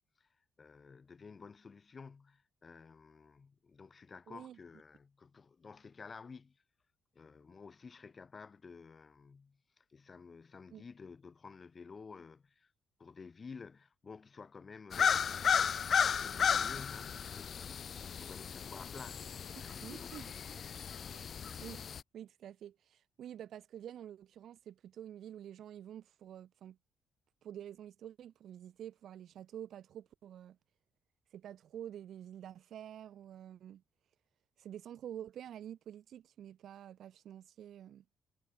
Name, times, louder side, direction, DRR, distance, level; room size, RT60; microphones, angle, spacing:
voice 1, 0.6-6.6 7.1-12.7 13.0-15.6 16.0-20.1, left 5 dB, 35° left, 5.2 m, -52 dB
voice 2, 4.3-4.6 10.7-10.8 19.8-20.3 21.1-21.3 21.6-21.8 22.1-26.8 27.4-30.6 31.3-33.8 34.6-38.0, right 10 dB, 70° right, 2.5 m, -48 dB
sound 1, 14.9-22.0, left 7 dB, 50° left, 0.4 m, -34 dB
cardioid pair, 90°, 0 cm